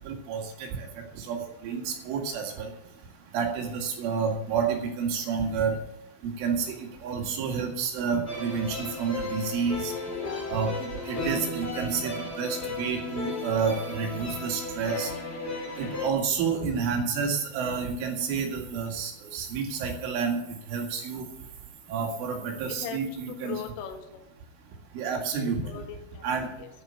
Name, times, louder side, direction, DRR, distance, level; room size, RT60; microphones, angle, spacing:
voice 1, 0.1-0.9 1.2-2.7 3.3-5.8 6.4-6.8 7.0-9.9 10.5-15.1 15.8-20.4 20.7-21.2 21.9-23.6 25.0-25.6 26.2-26.5, right 5 dB, 75° right, 2 dB, 4.6 m, -29 dB
sound 1, 8.2-16.1, left 2 dB, 65° left, 0.6 m, -34 dB
voice 2, 10.1-10.4 22.8-23.0 23.3-24.2 25.6-26.2 26.6-26.7, left 8 dB, 80° left, 5 dB, 4.1 m, -39 dB
11.0 x 8.8 x 7.6 m, 0.81 s
omnidirectional pair, 5.8 m